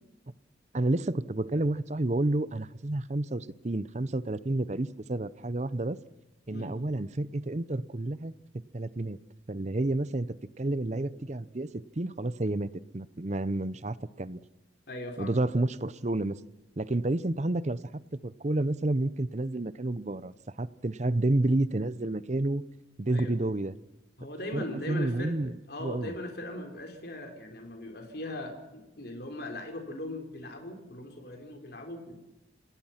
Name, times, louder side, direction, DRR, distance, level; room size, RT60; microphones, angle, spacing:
voice 1, 0.7-6.0 6.5-8.3 8.7-9.2 9.5-10.3 10.6-14.4 15.2-16.4 16.8-17.8 18.2-22.6 23.0-23.8 24.5-25.5 25.8-26.2, right 2 dB, 35° right, 16 dB, 0.7 m, -30 dB
voice 2, 14.9-15.4 23.1-23.3 24.2-25.4 25.7-32.2, left 1 dB, 55° left, 4 dB, 4.1 m, -39 dB
27.5 x 19.0 x 5.8 m, 0.98 s
head